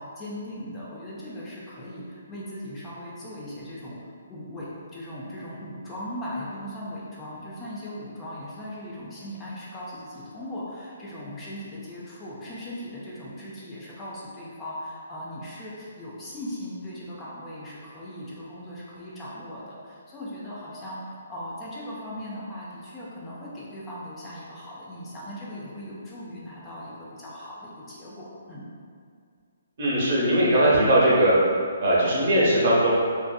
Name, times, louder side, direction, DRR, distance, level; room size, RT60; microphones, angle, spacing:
voice 1, 0.0-28.7, left 1 dB, 15° left, -7 dB, 0.4 m, -38 dB
voice 2, 29.8-31.3 31.8-33.0, right 1 dB, 50° right, -7 dB, 0.8 m, -20 dB
2.5 x 2.4 x 2.3 m, 2.2 s
hypercardioid pair, 150°, 0 cm